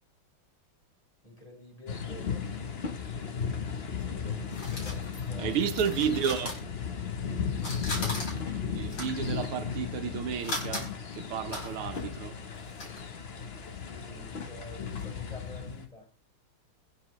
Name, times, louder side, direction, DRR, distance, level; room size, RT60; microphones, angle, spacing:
voice 1, 1.2-2.4 3.9-5.5 13.7-16.1, left 2 dB, 15° left, 4.6 m, -48 dB
sound 1, 1.9-15.9, left 6 dB, 40° left, 1.0 m, -35 dB
sound 2, 3.9-7.3 7.5-13.0, left 2 dB, 75° left, 5.6 m, -40 dB
voice 2, 5.4-6.5 7.9-8.0 8.7-12.4, right 8 dB, 90° right, 2.0 m, -32 dB
24.0 x 8.0 x 3.1 m
omnidirectional pair, 2.3 m